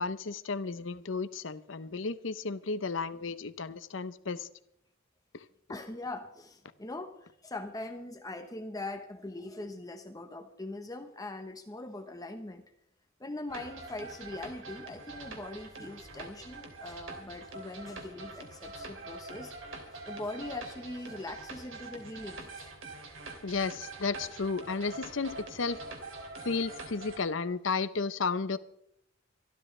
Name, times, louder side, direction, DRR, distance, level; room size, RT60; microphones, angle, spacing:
voice 1, 0.0-4.5 5.3-5.4 23.4-25.8 26.4-28.6, left 4 dB, 75° left, 14 dB, 0.8 m, -33 dB
voice 2, 5.7-12.6 13.2-22.7, left 2 dB, 20° left, 6 dB, 1.0 m, -41 dB
sound 1, 13.5-27.2, right 2 dB, 85° right, 2.9 m, -45 dB
25.0 x 12.5 x 3.3 m, 0.74 s
head